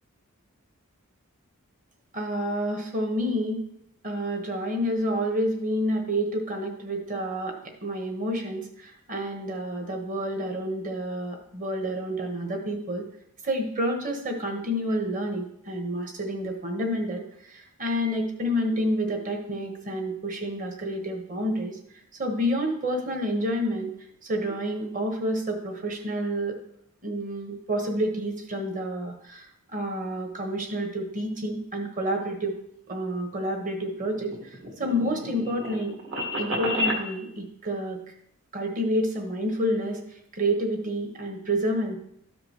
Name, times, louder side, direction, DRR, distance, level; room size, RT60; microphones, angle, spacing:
voice 1, 2.1-3.6 4.0-13.0 13.4-23.9 24.2-26.6 27.0-32.5 32.9-35.9 36.4-38.0 38.5-42.0, equal, 35° right, 3 dB, 1.3 m, -29 dB
sound 1, 34.0-37.0, equal, 55° right, 1.7 m, -30 dB
13.0 x 5.1 x 3.1 m, 0.72 s
head